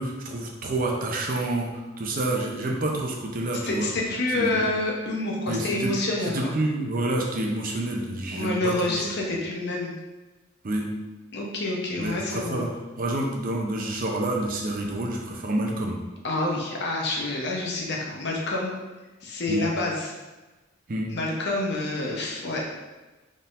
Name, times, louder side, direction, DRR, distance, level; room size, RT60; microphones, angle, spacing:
voice 1, 0.0-3.9 4.3-4.5 5.5-5.9 6.3-9.0 10.6-10.9 12.0-12.7 13.0-16.0 19.5-19.6 20.9-21.1, right 1 dB, 45° right, 0 dB, 0.6 m, -28 dB
voice 2, 3.7-6.5 8.3-9.9 11.3-12.6 16.2-18.8 19.2-20.1 21.1-22.7, left 2 dB, 60° left, -2 dB, 0.8 m, -28 dB
4.1 x 3.7 x 2.5 m, 1.2 s
head